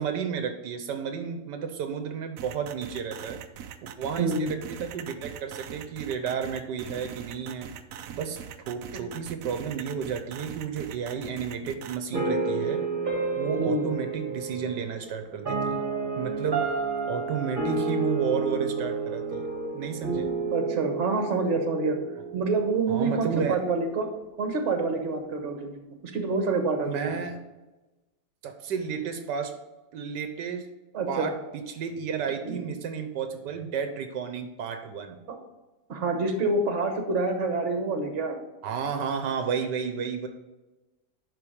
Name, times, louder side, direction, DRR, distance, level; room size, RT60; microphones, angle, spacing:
voice 1, 0.0-3.4 4.0-7.7 8.1-8.4 8.7-12.8 13.4-15.9 16.2-16.7 17.1-19.5 19.7-20.3 22.9-23.6 26.8-27.4 28.4-29.6 29.9-30.7 31.1-35.2 38.6-40.3, right 6 dB, 85° right, 7 dB, 1.4 m, -32 dB
sound 1, 2.4-12.0, right 9 dB, 65° right, 0.9 m, -41 dB
voice 2, 4.2-4.5 13.6-13.9 20.5-22.0 22.3-24.1 24.4-25.7 26.0-27.2 30.9-31.3 32.4-32.6 35.3-35.4 35.9-38.4, right 3 dB, 45° right, 5 dB, 1.4 m, -27 dB
sound 2, 12.1-23.2, right 4 dB, 30° right, 1.6 m, -30 dB
10.5 x 4.4 x 5.1 m, 1.1 s
omnidirectional pair, 1.8 m